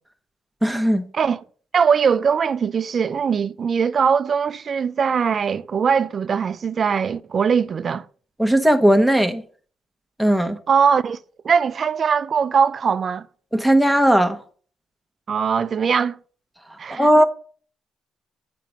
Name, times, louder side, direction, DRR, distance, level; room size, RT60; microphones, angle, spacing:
voice 1, 0.6-1.0 8.4-9.4 10.2-10.6 13.5-14.4 16.9-17.2, equal, ahead, 1.1 m, -17 dB
voice 2, 1.1-1.4 1.7-8.0 10.7-11.2 11.4-13.3 15.3-16.2 16.8-17.1, right 6 dB, 50° right, 0.5 m, -21 dB
7.5 x 6.1 x 5.4 m
cardioid pair, 90°, 0 cm